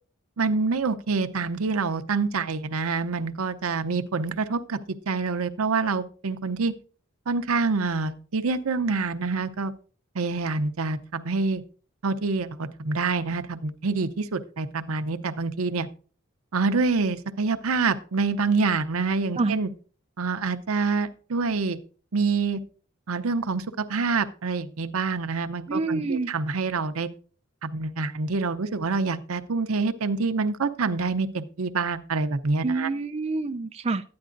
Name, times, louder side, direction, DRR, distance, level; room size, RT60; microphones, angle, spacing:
voice 1, 0.4-4.8 5.1-6.7 7.3-9.7 10.1-11.6 12.0-15.9 16.5-19.7 20.2-21.8 22.1-22.6 23.1-27.1 27.6-32.9, right 4 dB, 85° right, 0.7 m, -26 dB
voice 2, 25.7-26.3 32.6-34.0, right 3 dB, 30° right, 0.4 m, -27 dB
12.5 x 9.6 x 2.6 m
head